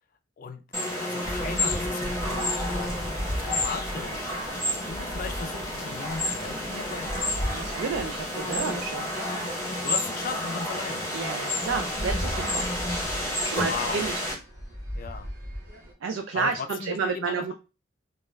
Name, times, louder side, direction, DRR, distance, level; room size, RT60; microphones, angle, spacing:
voice 1, 0.4-4.3 4.6-7.1 9.8-11.1 13.6-14.1 14.9-15.3 16.3-16.5 16.8-17.5, left 5 dB, 45° left, 7 dB, 0.3 m, -37 dB
sound 1, 0.7-14.3, left 1 dB, 15° left, 0.8 m, -30 dB
sound 2, 1.2-15.9, equal, 50° right, 0.8 m, -38 dB
sound 3, 2.5-11.0, equal, 20° right, 0.5 m, -49 dB
voice 2, 7.5-9.1 11.1-12.7 13.4-14.1 16.0-17.5, right 5 dB, 85° right, 5 dB, 0.3 m, -30 dB
2.3 x 2.1 x 3.1 m, 0.31 s
head